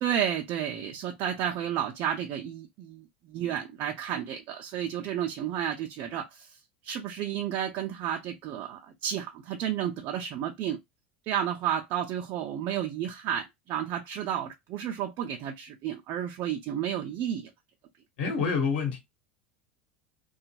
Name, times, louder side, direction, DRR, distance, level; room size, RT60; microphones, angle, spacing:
voice 1, 0.0-6.6 6.8-10.8 11.3-17.5, right 10 dB, 45° right, 0.5 m, -32 dB
voice 2, 18.2-19.0, left 5 dB, 65° left, 1.1 m, -27 dB
2.8 x 2.3 x 2.8 m
figure-of-eight pair, 80°, 6 cm